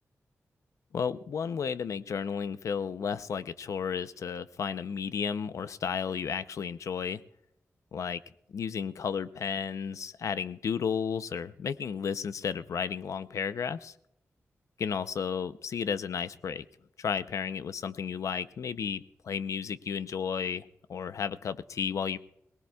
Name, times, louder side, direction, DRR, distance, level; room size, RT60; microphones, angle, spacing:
voice 1, 0.9-7.2 7.9-8.2 8.5-13.9 14.8-16.7 17.0-22.2, left 6 dB, 80° left, 13 dB, 0.6 m, -33 dB
23.0 x 18.5 x 2.3 m, 0.75 s
wide cardioid pair, 95°, 5 cm